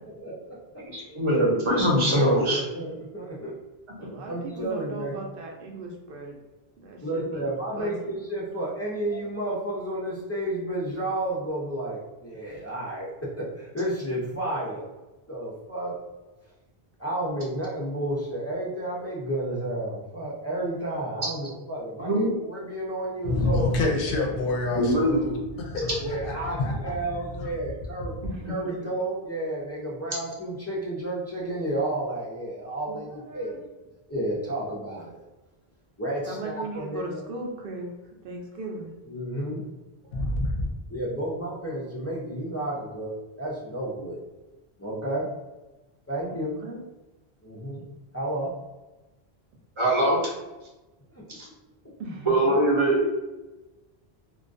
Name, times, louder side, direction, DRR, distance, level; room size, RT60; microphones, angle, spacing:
voice 1, 0.1-0.6 2.1-3.5 4.2-5.2 7.0-14.9 15.3-15.9 17.0-24.0 26.0-28.1 28.5-33.6 34.1-35.2 36.0-37.2 39.1-39.6 40.9-43.1 43.4-44.2 44.8-45.3 46.1-46.6 47.4-47.8 48.1-48.5 51.1-51.4, right 1 dB, 25° left, -6 dB, 0.4 m, -31 dB
voice 2, 0.9-2.6 4.0-4.1 22.1-22.3 24.7-25.2 49.8-50.3 51.3-51.4 52.3-53.1, right 1 dB, 35° right, -4 dB, 0.7 m, -22 dB
voice 3, 4.0-6.4 6.8-7.4 7.7-7.9 28.2-28.7 32.9-33.6 36.3-37.9 38.2-38.9 46.4-46.8 52.0-52.5, right 2 dB, 65° right, 1 dB, 0.7 m, -37 dB
voice 4, 23.2-26.9 27.4-27.5 40.1-40.7, left 2 dB, 65° left, 1 dB, 0.7 m, -27 dB
2.3 x 2.2 x 2.5 m, 1.1 s
omnidirectional pair, 1.1 m